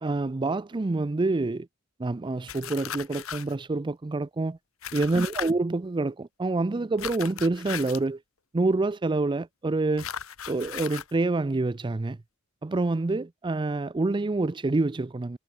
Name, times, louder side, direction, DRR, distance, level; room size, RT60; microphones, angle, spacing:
voice 1, 0.0-1.7 2.0-4.6 4.9-8.2 8.5-10.1 10.5-12.2 12.6-15.4, right 2 dB, 25° right, 0.4 m, -27 dB
sound 1, 2.5-3.5 4.8-5.5 7.0-8.1 10.0-11.1, left 8 dB, 90° left, 1.6 m, -37 dB
head